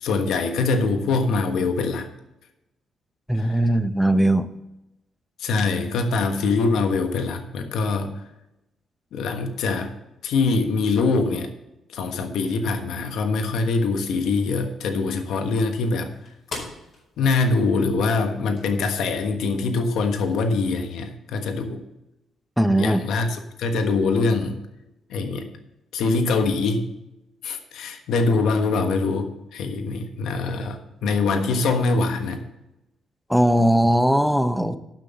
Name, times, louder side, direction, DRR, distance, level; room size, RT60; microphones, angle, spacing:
voice 1, 0.0-2.1 3.3-3.5 5.4-8.1 9.1-9.9 10.2-11.5 11.9-16.1 17.2-21.8 22.7-24.6 25.1-25.5 25.9-26.9 27.4-32.4, left 3 dB, 80° left, 6 dB, 1.3 m, -23 dB
voice 2, 3.3-4.5 22.6-23.0 33.3-34.8, right 1 dB, ahead, 10 dB, 0.8 m, -19 dB
sound 1, 13.5-18.8, left 3 dB, 50° left, 4.6 m, -43 dB
11.0 x 6.2 x 6.9 m, 0.90 s
cardioid pair, 90°, 0 cm